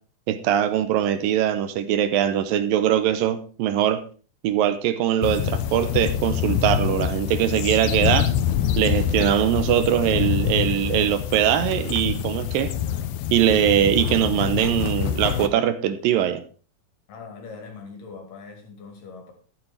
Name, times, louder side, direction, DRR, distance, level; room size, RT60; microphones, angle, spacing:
voice 1, 0.3-4.0 4.4-8.3 8.8-12.7 13.3-16.4, right 10 dB, 80° right, 11 dB, 2.5 m, -21 dB
sound 1, 5.2-15.5, left 10 dB, 85° left, 2.8 m, -26 dB
voice 2, 17.1-19.3, left 4 dB, 65° left, 4 dB, 4.0 m, -41 dB
12.5 x 8.9 x 4.5 m, 0.37 s
omnidirectional pair, 4.2 m